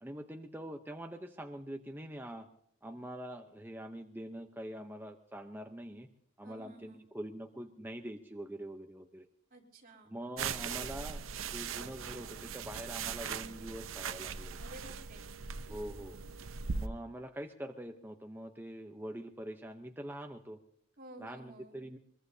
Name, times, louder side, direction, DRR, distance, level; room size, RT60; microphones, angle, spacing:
voice 1, 0.0-2.5 2.8-6.1 6.4-9.2 10.1-11.2 11.5-14.6 15.7-16.2 16.7-20.6 21.2-22.0, right 1 dB, 10° right, 4 dB, 0.8 m, -44 dB
voice 2, 6.4-7.0 9.5-10.1 14.6-15.3 21.0-21.9, right 1 dB, 45° right, -1 dB, 3.5 m, -53 dB
sound 1, 10.4-16.9, right 6 dB, 90° right, 0.8 m, -40 dB
23.0 x 22.0 x 2.8 m, 0.68 s
head